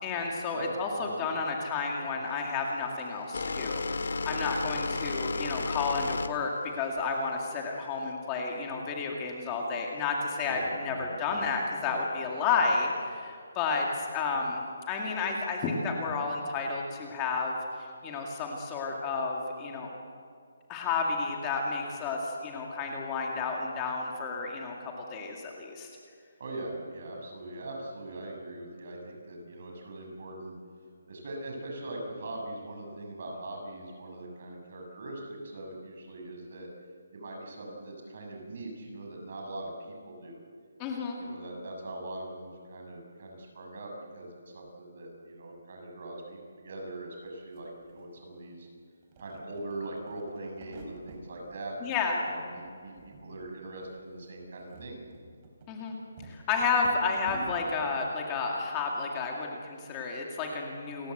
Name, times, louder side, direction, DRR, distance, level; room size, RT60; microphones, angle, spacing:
voice 1, 0.0-3.8 4.2-19.9 20.7-25.9 40.8-41.2 51.8-52.2 55.7-56.0 56.2-61.1, left 4 dB, 15° left, 0 dB, 2.2 m, -31 dB
sound 1, 2.3-8.1, left 3 dB, 70° left, 1.9 m, -33 dB
voice 2, 10.5-11.5 11.8-12.0 12.2-12.4 26.4-30.5 31.1-36.7 37.1-40.4 41.2-48.7 49.2-55.0, right 2 dB, 45° right, 1 dB, 6.6 m, -41 dB
sound 2, 47.3-47.4 47.6-48.7 49.0-51.2 51.6-52.4 52.6-53.5 53.8-53.9 54.4-57.7, right 2 dB, 20° right, 4.2 m, -48 dB
29.0 x 22.5 x 8.0 m, 2.3 s
hypercardioid pair, 175°, 0 cm